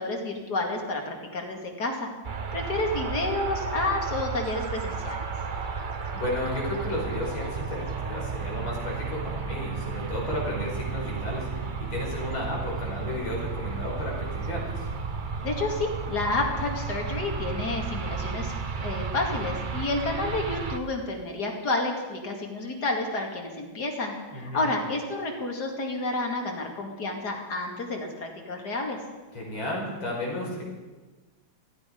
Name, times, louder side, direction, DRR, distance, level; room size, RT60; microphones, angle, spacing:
voice 1, 0.0-2.1 2.5-5.2 15.4-29.0, left 2 dB, 50° left, 2 dB, 2.8 m, -30 dB
sound 1, 2.2-20.8, right 5 dB, 45° right, 0.6 m, -33 dB
voice 2, 6.1-14.9 24.3-24.7 29.3-30.6, left 1 dB, 85° left, -3 dB, 6.1 m, -33 dB
18.0 x 14.5 x 5.3 m, 1.2 s
omnidirectional pair, 2.2 m